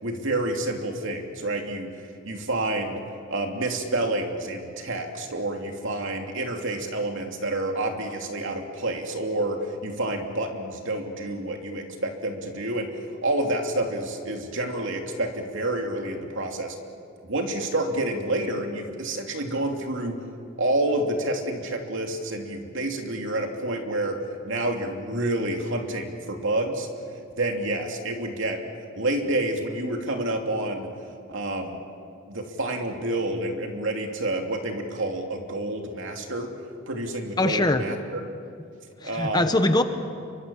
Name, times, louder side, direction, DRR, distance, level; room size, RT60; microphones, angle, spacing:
voice 1, 0.0-1.9 2.2-3.0 3.3-12.9 13.2-16.8 17.2-20.2 20.6-24.2 24.4-26.9 27.4-28.6 28.9-30.9 31.3-31.8 32.3-36.5 36.9-38.0 39.0-39.5, right 1 dB, 65° right, 3 dB, 3.0 m, -28 dB
voice 2, 37.4-37.9 39.0-39.8, left 2 dB, 20° left, 8 dB, 1.1 m, -22 dB
29.0 x 24.0 x 7.2 m, 2.3 s
head